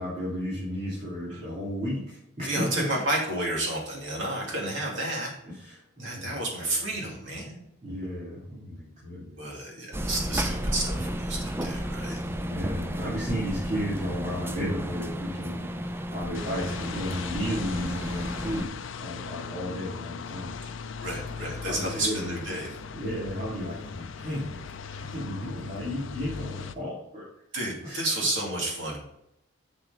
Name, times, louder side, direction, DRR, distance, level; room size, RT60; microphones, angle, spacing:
voice 1, 0.0-2.9 5.4-7.1 7.8-9.7 12.2-22.3 22.9-27.3 27.8-28.0, equal, 35° right, -8 dB, 3.0 m, -34 dB
voice 2, 2.4-5.3 6.0-7.7 9.4-12.2 21.0-22.8 27.5-29.0, right 1 dB, 65° right, -3 dB, 2.8 m, -31 dB
sound 1, 9.9-18.6, equal, 10° right, 0.4 m, -32 dB
sound 2, 16.3-26.8, left 6 dB, 70° left, 0.5 m, -39 dB
7.0 x 6.9 x 4.0 m, 0.79 s
head